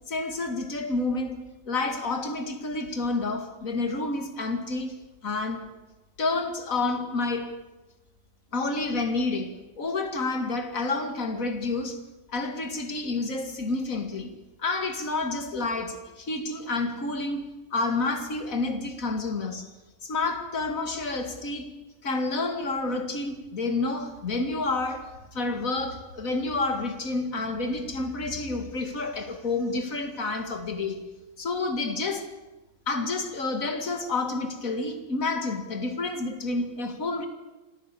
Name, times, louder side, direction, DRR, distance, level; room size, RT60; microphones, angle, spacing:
voice 1, 0.1-4.9 5.2-5.7 6.2-7.6 8.5-12.0 12.3-14.3 14.6-19.7 20.0-21.7 22.0-31.0 31.4-32.3 32.9-37.3, left 3 dB, 50° left, 2.5 m, -29 dB
25.5 x 15.0 x 8.5 m
omnidirectional pair, 1.8 m